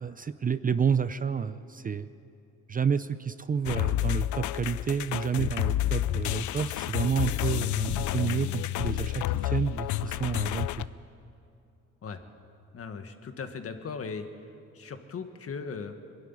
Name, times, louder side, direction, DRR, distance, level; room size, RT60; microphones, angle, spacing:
voice 1, 0.0-2.1 2.7-10.7, right 6 dB, 30° right, 13 dB, 0.5 m, -30 dB
sound 1, 3.7-10.9, left 14 dB, 75° left, 0.5 m, -29 dB
voice 2, 12.7-14.3 14.7-15.9, left 5 dB, 50° left, 7 dB, 1.6 m, -38 dB
22.5 x 12.0 x 9.9 m, 2.7 s
cardioid pair, 90°, 30 cm